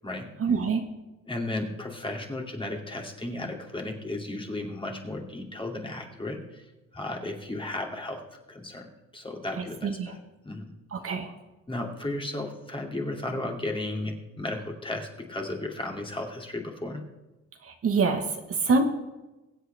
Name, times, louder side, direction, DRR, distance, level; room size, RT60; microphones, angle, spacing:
voice 1, 0.4-0.8 9.8-10.1 10.9-11.3 17.6-18.8, right 4 dB, 50° right, 5 dB, 1.4 m, -25 dB
voice 2, 1.3-6.7 6.9-8.2 8.5-8.9 9.1-10.2 10.4-10.7 11.7-17.0 18.7-18.8, left 2 dB, 15° left, 1 dB, 2.5 m, -34 dB
22.5 x 8.1 x 3.4 m, 1.1 s
cardioid pair, 90°, 30 cm